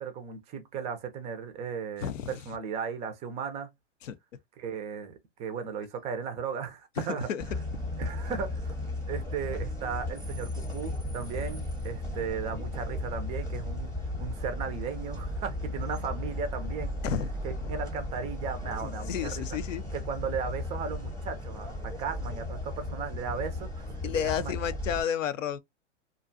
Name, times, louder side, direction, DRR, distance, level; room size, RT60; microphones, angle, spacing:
voice 1, 0.0-3.7 4.6-7.3 8.0-8.8 9.1-13.9 14.2-16.9 17.4-19.5 19.9-24.6, right 6 dB, 20° right, 0.4 m, -36 dB
voice 2, 2.0-2.3 4.0-4.2 7.0-7.4 9.5-9.6 17.0-17.3 17.6-17.7 18.8-19.8 24.0-25.6, left 9 dB, 90° left, 0.6 m, -32 dB
sound 1, 7.4-25.0, left 1 dB, 10° left, 0.8 m, -35 dB
2.5 x 2.2 x 2.5 m
hypercardioid pair, 125°, 37 cm